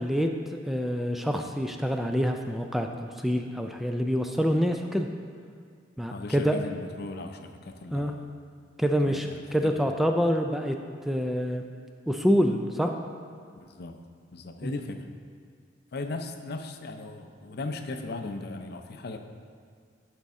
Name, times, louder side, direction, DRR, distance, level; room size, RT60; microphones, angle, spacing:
voice 1, 0.0-5.1 6.0-6.5 7.9-8.1 8.8-10.8 11.0-11.6 12.1-12.9 14.6-14.7, equal, ahead, 4 dB, 0.3 m, -26 dB
voice 2, 6.1-8.3 9.0-9.7 13.6-14.0 14.3-15.1 15.9-19.2, left 2 dB, 60° left, 7 dB, 0.5 m, -37 dB
11.0 x 5.2 x 3.6 m, 2.1 s
head